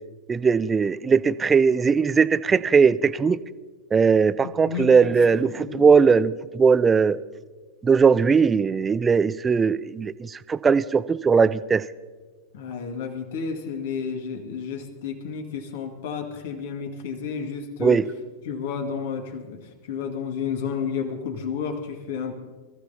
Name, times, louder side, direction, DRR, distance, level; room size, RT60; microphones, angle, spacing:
voice 1, 0.3-3.4 3.9-7.2 7.8-11.8 17.8-18.0, right 5 dB, 15° right, 18 dB, 0.4 m, -19 dB
voice 2, 4.4-5.9 12.5-18.0 18.4-22.3, left 6 dB, 55° left, 4 dB, 1.8 m, -31 dB
24.0 x 14.5 x 2.8 m, 1.4 s
figure-of-eight pair, 90°, 0 cm